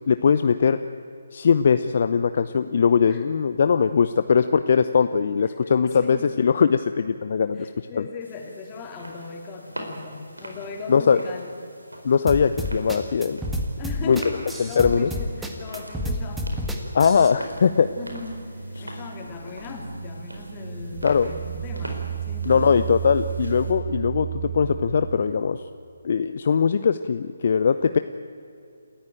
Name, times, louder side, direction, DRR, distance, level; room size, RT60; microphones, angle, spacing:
voice 1, 0.1-0.8 1.3-7.7 8.0-8.1 10.9-11.2 12.0-13.4 14.1-14.2 14.6-15.1 16.9-17.9 21.0-21.3 22.5-25.6 26.0-28.0, left 6 dB, 50° left, 11 dB, 0.7 m, -20 dB
voice 2, 5.4-6.3 7.5-11.5 13.8-16.5 18.0-22.9, left 4 dB, 20° left, 2 dB, 3.5 m, -38 dB
sound 1, 8.2-23.7, right 1 dB, 85° right, 4.7 m, -43 dB
sound 2, 12.3-17.3, equal, 5° right, 1.9 m, -29 dB
sound 3, 17.5-25.3, right 9 dB, 45° right, 1.5 m, -34 dB
28.5 x 15.0 x 9.1 m, 2.6 s
figure-of-eight pair, 145°, 0 cm